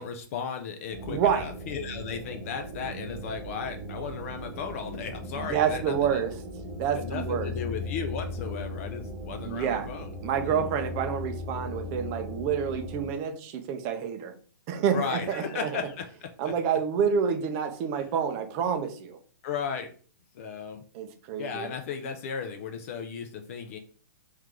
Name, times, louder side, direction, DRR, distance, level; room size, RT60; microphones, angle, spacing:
voice 1, 0.0-6.2 6.9-10.1 10.4-10.7 14.9-16.5 17.9-18.1 19.4-19.9 20.3-20.8 21.4-23.8, left 6 dB, 40° left, 6 dB, 0.5 m, -35 dB
sound 1, 0.9-13.1, left 1 dB, 10° right, 1.1 m, -38 dB
voice 2, 1.1-1.5 5.4-6.3 6.8-7.5 9.4-9.9 10.2-14.3 14.7-15.7 16.4-19.2 20.9-21.7, right 7 dB, 30° right, 7 dB, 0.6 m, -28 dB
3.2 x 3.2 x 3.7 m, 0.42 s
hypercardioid pair, 145°, 11 cm